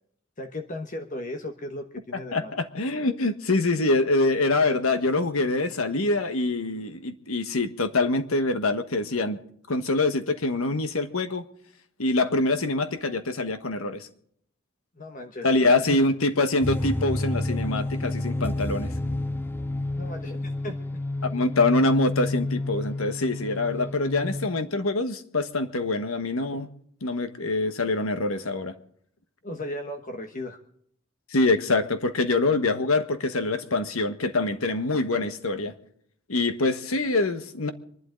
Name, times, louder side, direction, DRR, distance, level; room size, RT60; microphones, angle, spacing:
voice 1, 0.4-2.5 15.0-15.5 19.9-21.0 29.4-30.6, left 1 dB, 40° left, 5 dB, 1.2 m, -36 dB
voice 2, 2.3-9.4 9.7-11.4 12.0-14.1 15.4-18.9 21.2-26.7 27.0-28.7 31.3-35.7 36.3-37.7, left 2 dB, 90° left, 9 dB, 1.4 m, -25 dB
sound 1, 16.6-24.5, left 2 dB, 10° left, 0.6 m, -30 dB
25.0 x 11.5 x 3.8 m, 0.65 s
head